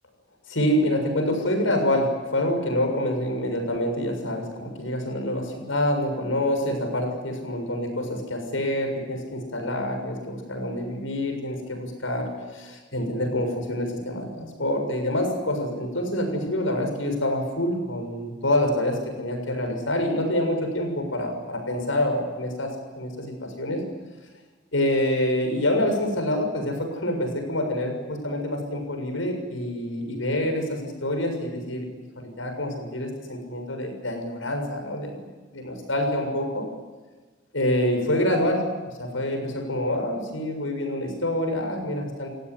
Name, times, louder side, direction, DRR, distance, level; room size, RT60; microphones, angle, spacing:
voice 1, 0.5-23.8 24.7-31.9 32.2-35.2 35.5-36.7 37.5-38.7 39.0-42.3, left 1 dB, 85° left, 4 dB, 7.1 m, -26 dB
30.0 x 16.5 x 9.8 m, 1.3 s
head